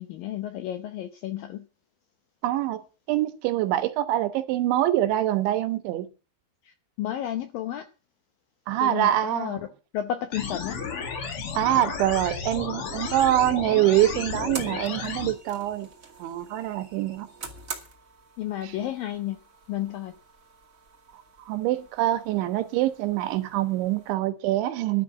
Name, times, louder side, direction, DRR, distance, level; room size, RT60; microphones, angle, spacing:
voice 1, 0.0-1.7 6.7-7.9 8.8-9.6 9.9-10.8 18.4-19.4 19.7-20.1, left 11 dB, 80° left, 2.1 m, -32 dB
voice 2, 2.4-2.8 3.1-6.1 8.7-9.6 11.6-15.9 16.2-17.3 21.5-25.0, right 13 dB, 85° right, 3.6 m, -25 dB
sound 1, 10.3-15.3, left 5 dB, 45° left, 2.0 m, -33 dB
sound 2, 13.5-24.2, right 4 dB, 40° right, 1.2 m, -45 dB
12.0 x 6.3 x 9.6 m
omnidirectional pair, 5.2 m